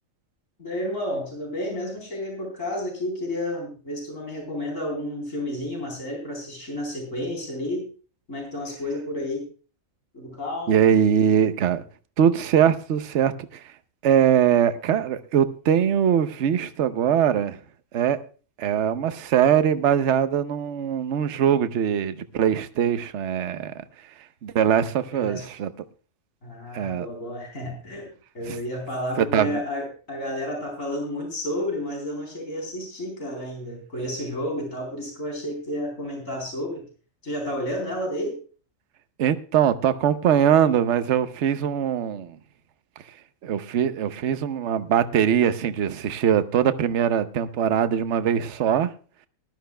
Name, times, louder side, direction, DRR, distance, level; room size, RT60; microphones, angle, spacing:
voice 1, 0.6-7.9 8.3-9.4 10.1-10.9 25.1-25.4 26.4-28.1 28.3-36.8 37.2-38.4, left 1 dB, 65° left, 1 dB, 4.4 m, -31 dB
voice 2, 10.7-11.8 12.2-13.6 14.0-17.6 17.9-18.2 18.6-23.8 24.4-25.7 26.7-27.1 28.5-28.6 29.2-29.6 39.2-42.4 43.4-48.9, right 9 dB, 60° right, 11 dB, 1.0 m, -22 dB
19.5 x 12.0 x 2.2 m, 0.37 s
omnidirectional pair, 1.4 m